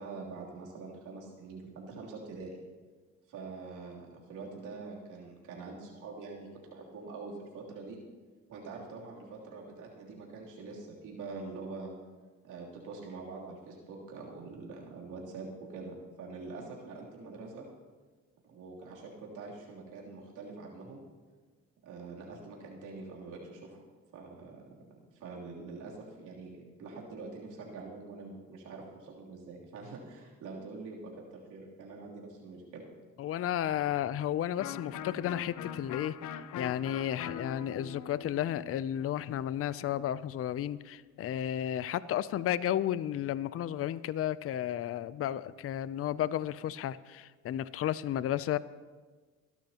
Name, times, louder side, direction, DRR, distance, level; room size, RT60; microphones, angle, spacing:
voice 1, 0.0-2.5 3.3-8.0 8.5-11.9 12.4-17.7 18.4-21.0 21.8-23.8 24.1-24.7 25.1-32.8, right 3 dB, 85° right, -3 dB, 3.2 m, -45 dB
voice 2, 33.2-48.6, left 11 dB, 50° left, 17 dB, 0.5 m, -33 dB
Electric guitar, 34.6-40.2, left 8 dB, 75° left, 0.8 m, -43 dB
24.0 x 12.0 x 2.9 m, 1.4 s
cardioid pair, 90°, 30 cm